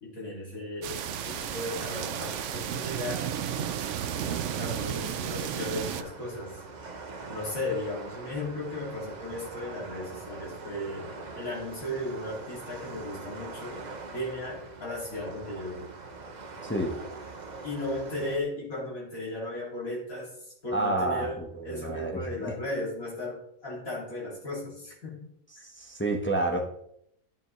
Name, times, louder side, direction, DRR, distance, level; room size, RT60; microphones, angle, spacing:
voice 1, 0.0-3.2 3.5-3.7 4.6-6.6 7.3-13.8 14.1-15.9 17.6-21.3 21.6-25.3 26.5-26.6, left 1 dB, 80° left, -6 dB, 3.3 m, -36 dB
sound 1, 0.8-6.0, right 10 dB, 65° right, 0.9 m, -33 dB
sound 2, 1.0-18.4, right 3 dB, 35° right, 0.8 m, -43 dB
voice 2, 16.6-17.0 20.7-22.5 25.6-26.6, right 2 dB, 10° left, 1 dB, 1.0 m, -30 dB
11.5 x 7.4 x 3.2 m, 0.73 s
omnidirectional pair, 1.4 m